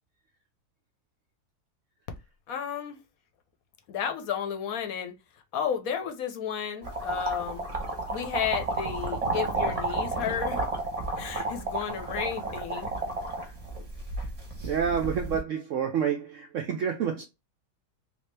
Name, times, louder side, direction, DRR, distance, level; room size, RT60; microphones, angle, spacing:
voice 1, 2.5-3.0 3.9-5.1 5.5-7.6 8.1-10.6 11.2-12.9, left 8 dB, 65° left, 1.0 m, -32 dB
sound 1, 6.8-15.4, right 2 dB, 25° right, 0.8 m, -32 dB
voice 2, 14.6-17.2, right 7 dB, 75° right, 0.7 m, -29 dB
3.4 x 2.7 x 3.2 m
omnidirectional pair, 1.9 m